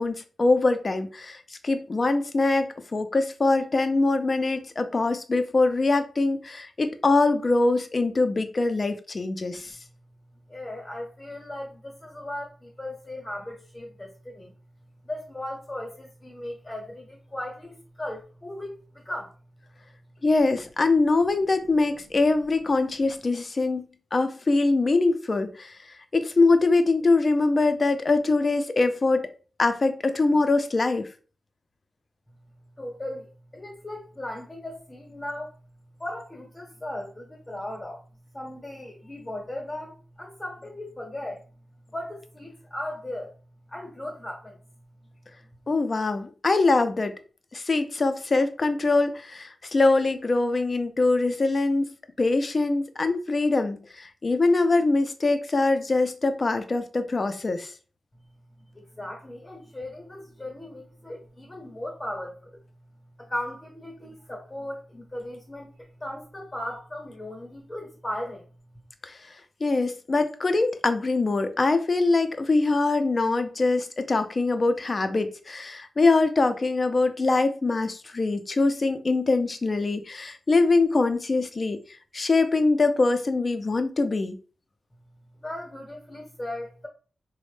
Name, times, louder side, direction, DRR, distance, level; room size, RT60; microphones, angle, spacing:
voice 1, 0.0-9.8 20.2-23.8 24.1-25.8 26.1-29.3 29.6-31.1 45.7-47.2 47.5-51.9 52.2-57.7 69.0-69.2 69.6-81.8 82.1-84.4, left 3 dB, 30° left, 0.4 m, -23 dB
voice 2, 10.5-14.5 15.0-19.3 32.8-35.5 36.0-38.0 38.3-41.4 41.9-43.3 43.7-44.6 58.7-62.6 63.2-68.5 85.4-86.9, left 1 dB, 15° left, 0.8 m, -37 dB
4.0 x 2.0 x 3.2 m
wide cardioid pair, 155°, 0 cm